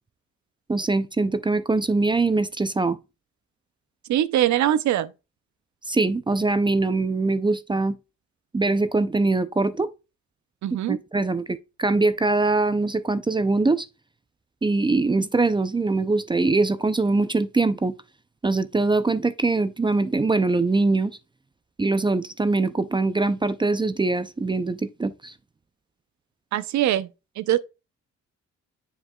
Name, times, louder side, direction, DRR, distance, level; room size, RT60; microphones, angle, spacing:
voice 1, 0.7-3.0 5.9-8.0 8.5-9.9 10.9-13.9 14.6-17.9 18.4-21.2 21.8-25.3, right 3 dB, 15° right, 0.4 m, -22 dB
voice 2, 4.1-5.1 10.6-11.0 26.5-27.1 27.4-27.6, right 12 dB, 65° right, 0.6 m, -22 dB
9.4 x 5.1 x 2.3 m
cardioid pair, 90°, 30 cm